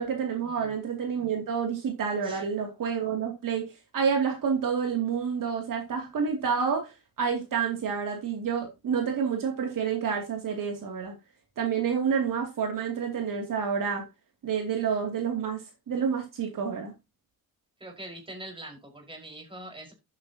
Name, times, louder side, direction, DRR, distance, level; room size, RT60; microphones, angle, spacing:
voice 1, 0.0-6.9 7.2-11.1 11.6-14.0 14.4-16.9, right 6 dB, 60° right, 2.7 m, -29 dB
voice 2, 17.8-19.9, right 1 dB, 15° right, 5.0 m, -43 dB
12.0 x 8.9 x 2.9 m
cardioid pair, 135°, 37 cm